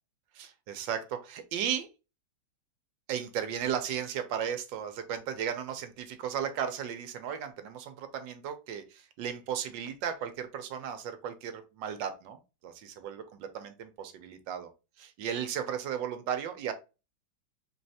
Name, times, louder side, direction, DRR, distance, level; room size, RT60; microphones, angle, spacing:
voice 1, 0.3-1.9 3.1-14.7 15.0-16.7, right 8 dB, 75° right, 8 dB, 1.3 m, -35 dB
3.9 x 3.1 x 2.7 m, 0.29 s
omnidirectional pair, 2.1 m